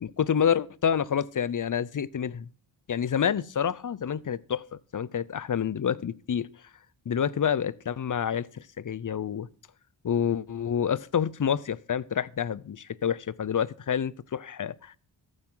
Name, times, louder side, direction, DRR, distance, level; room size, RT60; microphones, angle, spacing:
voice 1, 0.0-2.5 2.9-6.5 7.1-9.5 10.0-15.0, left 8 dB, 45° left, 0.6 m, -28 dB
14.0 x 8.8 x 3.9 m
cardioid pair, 65°, 46 cm